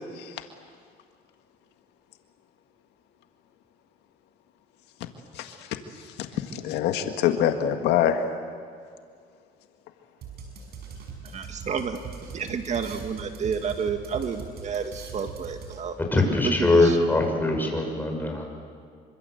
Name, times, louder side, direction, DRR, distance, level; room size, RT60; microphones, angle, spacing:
voice 1, 5.3-8.3, left 9 dB, 85° left, 6 dB, 1.8 m, -26 dB
sound 1, 10.2-16.1, right 6 dB, 70° right, 5.8 m, -41 dB
voice 2, 11.2-12.0 12.3-16.0 16.4-17.0, right 6 dB, 45° right, 7 dB, 1.9 m, -30 dB
voice 3, 16.1-18.4, left 2 dB, 10° left, 2 dB, 6.3 m, -22 dB
26.0 x 25.0 x 8.0 m, 2.1 s
cardioid pair, 110°, 17 cm